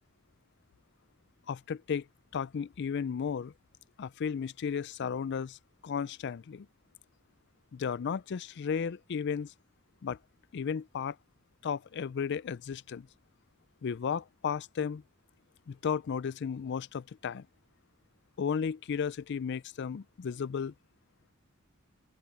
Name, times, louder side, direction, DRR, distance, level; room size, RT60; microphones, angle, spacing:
voice 1, 1.5-2.1 2.3-3.5 4.0-5.6 5.8-6.7 7.7-9.5 10.0-10.2 10.5-11.2 11.6-13.1 13.8-15.0 15.7-17.5 18.4-20.7, left 6 dB, 55° left, 0.4 m, -34 dB
open air
head